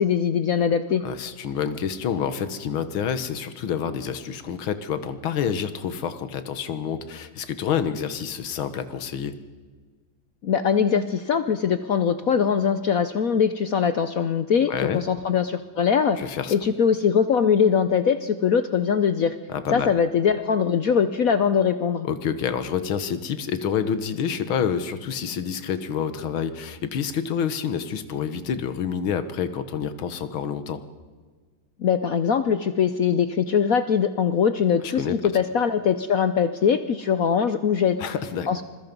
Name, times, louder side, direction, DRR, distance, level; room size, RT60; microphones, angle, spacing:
voice 1, 0.0-1.0 10.4-16.2 16.5-19.4 19.7-22.1 31.8-38.0 38.5-38.6, left 7 dB, 60° left, 11 dB, 0.9 m, -22 dB
voice 2, 1.0-9.4 14.7-15.0 16.2-16.5 19.5-19.9 22.0-30.8 34.8-35.2 38.0-38.6, left 7 dB, 80° left, 11 dB, 2.0 m, -28 dB
26.5 x 22.0 x 5.3 m, 1.5 s
omnidirectional pair, 2.2 m